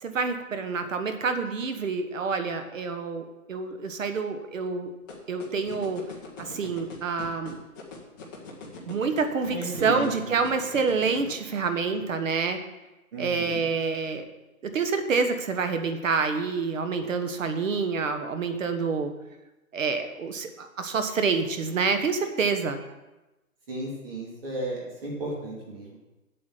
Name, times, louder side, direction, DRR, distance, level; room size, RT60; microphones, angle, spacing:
voice 1, 0.0-4.9 5.3-6.0 6.4-7.5 8.9-12.6 13.2-14.2 14.6-19.1 19.7-22.8, right 4 dB, 60° right, 7 dB, 1.5 m, -27 dB
sound 1, 5.1-11.3, left 4 dB, 15° left, 1.2 m, -41 dB
voice 2, 9.5-10.3 13.1-13.6 23.7-26.0, right 2 dB, 40° right, -3 dB, 2.5 m, -34 dB
8.1 x 7.5 x 7.5 m, 1.0 s
hypercardioid pair, 170°, 44 cm